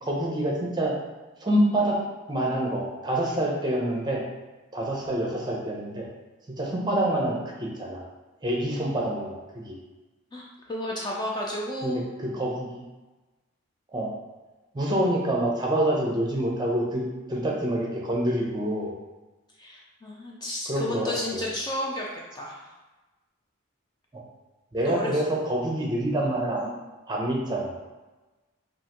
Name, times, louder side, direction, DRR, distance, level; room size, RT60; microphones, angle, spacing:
voice 1, 0.0-1.0 1.4-2.0 2.3-4.2 4.7-6.0 6.6-8.0 8.4-9.3 9.6-9.8 11.8-12.7 13.9-14.1 14.7-17.0 17.3-18.9 20.7-21.5 24.1-24.2 24.7-26.7 27.1-27.8, right 1 dB, 20° right, -2 dB, 0.7 m, -26 dB
voice 2, 10.3-12.0 19.6-22.7 24.8-25.2, left 1 dB, 20° left, -3 dB, 0.4 m, -32 dB
5.4 x 2.5 x 3.0 m, 1.2 s
head